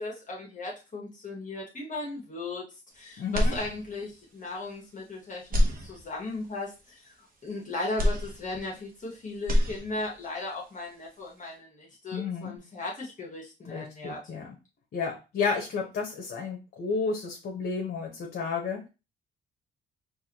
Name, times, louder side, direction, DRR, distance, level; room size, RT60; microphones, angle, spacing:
voice 1, 0.0-2.7 2.9-7.1 7.4-14.2, left 2 dB, 40° left, -2 dB, 1.4 m, -37 dB
voice 2, 3.2-3.5 12.1-12.5 13.7-14.5 14.9-18.9, left 5 dB, 55° left, 0 dB, 1.1 m, -32 dB
sound 1, 3.3-4.2 4.7-4.8 5.4-6.5 8.0-9.1 9.3-10.3, left 1 dB, 45° right, 1.1 m, -27 dB
4.6 x 2.6 x 2.9 m, 0.29 s
cardioid pair, 90°, 20 cm